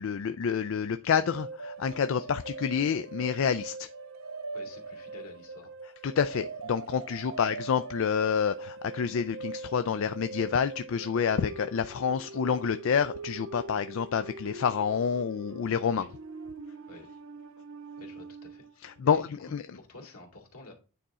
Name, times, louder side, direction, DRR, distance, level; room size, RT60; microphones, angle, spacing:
voice 1, 0.0-3.9 6.0-16.1 18.8-19.6, left 7 dB, 65° left, 0.4 m, -28 dB
sound 1, 1.3-18.7, right 3 dB, 65° right, 0.9 m, -42 dB
voice 2, 4.5-5.7 16.0-16.1 16.9-17.2 18.0-20.7, left 2 dB, 80° left, 2.5 m, -50 dB
9.2 x 4.2 x 3.6 m
head